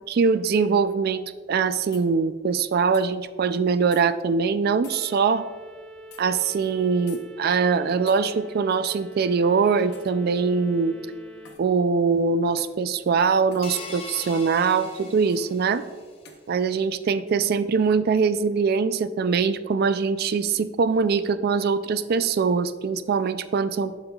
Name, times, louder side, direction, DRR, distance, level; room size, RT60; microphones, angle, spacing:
voice 1, 0.1-5.4 6.2-10.9 11.6-15.8 16.5-23.9, right 5 dB, 55° right, 13 dB, 0.3 m, -22 dB
sound 1, 1.9-2.1 2.9-3.1 3.9-4.0 4.8-5.0 6.1-6.2 7.1-7.2 8.1-8.2 9.9-10.2 11.4-11.7 12.6-12.8 13.5-13.7 15.3-15.4 16.2-16.4, left 6 dB, 60° left, 0.9 m, -48 dB
sound 2, 4.8-11.6, right 1 dB, 5° left, 0.6 m, -45 dB
sound 3, 13.6-16.1, left 3 dB, 30° left, 0.9 m, -40 dB
11.5 x 5.6 x 2.3 m, 1.5 s
head